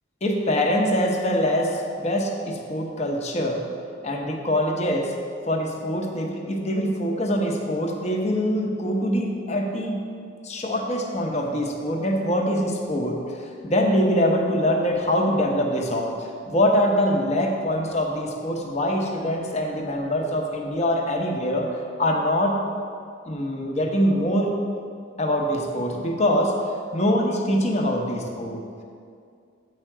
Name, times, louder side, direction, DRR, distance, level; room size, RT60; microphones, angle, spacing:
voice 1, 0.2-3.7 4.0-5.1 5.5-10.0 10.4-22.6 23.2-24.5 25.2-26.5 26.9-28.6, equal, 35° left, 1 dB, 0.8 m, -24 dB
8.1 x 4.5 x 6.0 m, 2.3 s
head